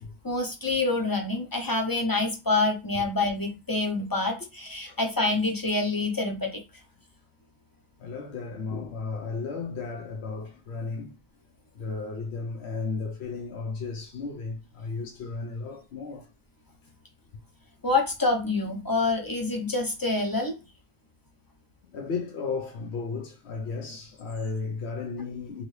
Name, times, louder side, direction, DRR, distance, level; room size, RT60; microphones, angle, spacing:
voice 1, 0.2-6.6 17.8-20.5, left 3 dB, 30° left, 0.4 m, -27 dB
voice 2, 8.0-11.2 11.7-16.3 21.9-25.6, left 4 dB, 85° left, 0.9 m, -34 dB
3.0 x 2.7 x 3.0 m
omnidirectional pair, 1.1 m